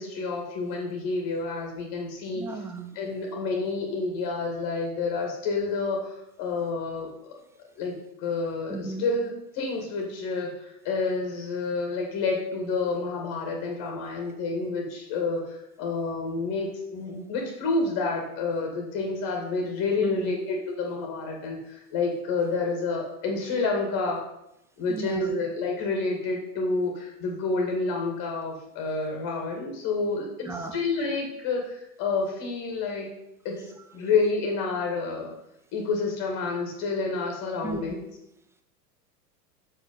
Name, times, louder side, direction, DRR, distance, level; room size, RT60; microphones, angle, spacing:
voice 1, 0.0-2.4 2.9-7.3 7.8-7.9 8.2-24.3 24.8-33.1 33.4-35.3 35.7-38.0, left 3 dB, 45° left, 1 dB, 2.4 m, -29 dB
voice 2, 2.3-2.9 8.7-9.1 20.0-20.3 24.9-25.3 30.4-30.8 33.6-34.1 37.6-37.8, right 4 dB, 5° right, 7 dB, 0.6 m, -35 dB
7.1 x 5.5 x 5.6 m, 0.84 s
hypercardioid pair, 105°, 47 cm